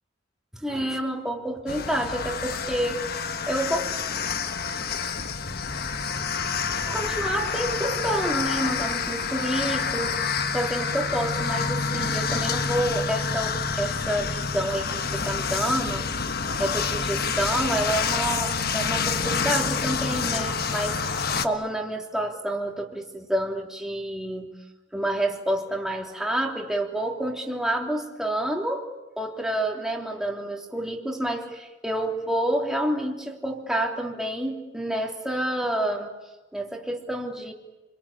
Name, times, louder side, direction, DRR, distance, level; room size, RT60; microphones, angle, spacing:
voice 1, 0.6-3.1 3.5-3.8 6.9-10.2 10.5-16.1 16.6-24.5 24.9-28.9 29.2-36.1 36.5-37.5, right 1 dB, 5° right, 0 dB, 3.3 m, -28 dB
sound 1, 1.7-21.5, left 5 dB, 55° left, 1.4 m, -28 dB
29.5 x 23.0 x 8.7 m, 1.1 s
head